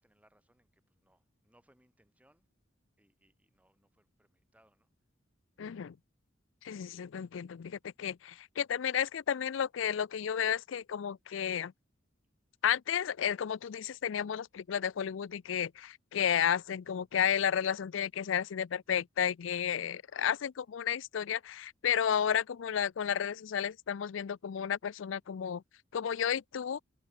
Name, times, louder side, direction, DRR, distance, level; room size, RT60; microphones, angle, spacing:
voice 1, 0.0-2.5 3.0-4.9, right 1 dB, 5° right, 4.2 m, -69 dB
voice 2, 5.6-6.0 6.6-11.7 12.6-25.6 25.9-26.8, left 8 dB, 75° left, 0.4 m, -32 dB
head